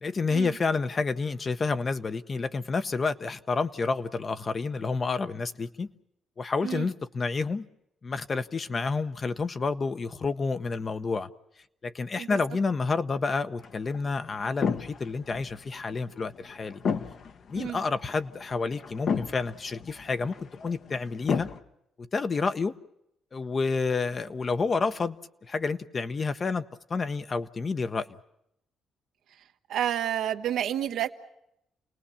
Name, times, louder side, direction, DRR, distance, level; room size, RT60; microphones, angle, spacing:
voice 1, 0.0-5.9 6.4-7.6 8.0-11.3 11.8-16.8 17.5-21.5 22.0-22.7 23.3-25.2 25.4-26.6 26.9-28.1, left 4 dB, 35° left, 0.9 m, -29 dB
sound 1, 13.6-21.6, left 6 dB, 60° left, 1.2 m, -34 dB
voice 2, 29.7-31.1, right 10 dB, 75° right, 1.2 m, -29 dB
29.5 x 19.0 x 7.1 m
cardioid pair, 90°, 0 cm